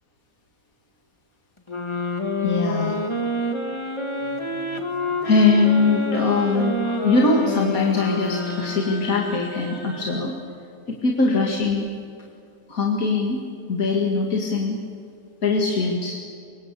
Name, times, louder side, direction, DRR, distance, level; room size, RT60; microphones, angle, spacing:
sound 1, 1.7-9.4, left 1 dB, 20° left, 2.0 m, -28 dB
voice 1, 2.4-3.0 5.2-6.8 7.0-10.3 10.9-11.9 12.7-13.4 13.7-14.8 15.4-16.2, left 3 dB, 65° left, 0 dB, 2.6 m, -21 dB
Singing, 4.2-10.2, equal, 45° right, 5.9 m, -41 dB
25.5 x 23.5 x 8.4 m, 2.5 s
omnidirectional pair, 1.6 m